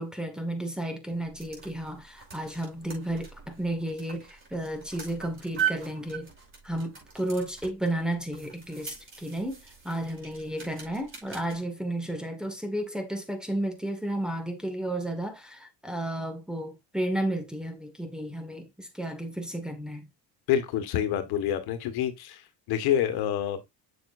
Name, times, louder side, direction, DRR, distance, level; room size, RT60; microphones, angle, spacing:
voice 1, 0.0-6.3 6.6-20.1, right 1 dB, ahead, 1.9 m, -33 dB
sound 1, 1.1-11.6, right 9 dB, 30° right, 5.5 m, -40 dB
voice 2, 20.5-22.4 22.7-23.6, left 10 dB, 70° left, 1.6 m, -27 dB
7.5 x 7.0 x 2.6 m
cardioid pair, 110°, 39 cm